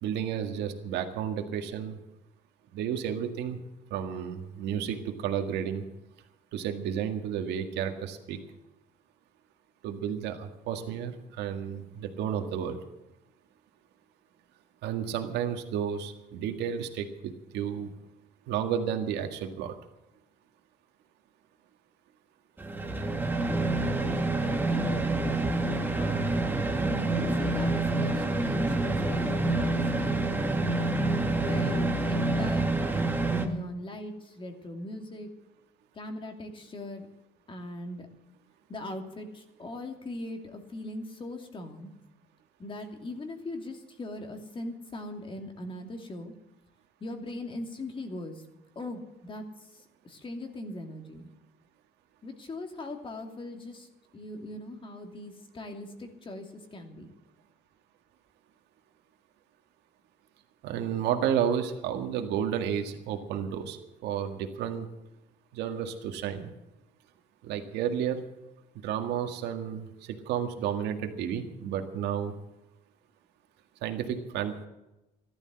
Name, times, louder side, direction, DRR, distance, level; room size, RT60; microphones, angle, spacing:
voice 1, 0.0-2.0 2.7-3.6 3.9-5.8 6.5-8.4 9.8-12.8 14.8-17.9 18.5-19.7 60.6-64.9 65.5-66.5 67.4-68.2 68.8-72.4 73.8-74.7, right 9 dB, 85° right, 5 dB, 1.9 m, -32 dB
sound 1, 22.6-33.5, right 2 dB, 10° right, 2.2 m, -27 dB
voice 2, 24.4-25.0 25.9-26.4 26.8-30.8 31.4-35.3 35.9-37.1 37.5-38.1 38.7-41.9 42.6-46.3 47.0-48.4 48.7-51.3 52.2-57.1, left 1 dB, 30° left, 4 dB, 2.7 m, -40 dB
14.5 x 12.0 x 7.7 m, 0.95 s
cardioid pair, 110°, 17 cm